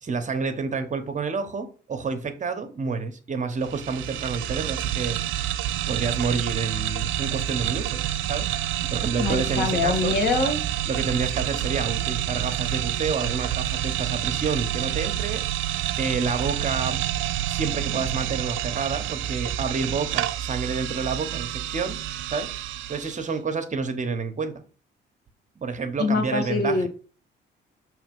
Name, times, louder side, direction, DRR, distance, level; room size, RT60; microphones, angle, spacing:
voice 1, 0.0-5.2 5.9-8.5 8.8-10.2 10.9-15.4 16.0-17.0 17.5-22.0 22.3-22.5 22.9-24.5 25.6-26.9, right 4 dB, 40° right, 7 dB, 1.0 m, -29 dB
sound 1, 3.6-23.3, right 12 dB, 80° right, 0.5 m, -28 dB
voice 2, 9.2-10.6 26.0-26.9, left 4 dB, 55° left, 3 dB, 1.7 m, -24 dB
6.2 x 3.2 x 5.3 m, 0.38 s
cardioid pair, 90°, 20 cm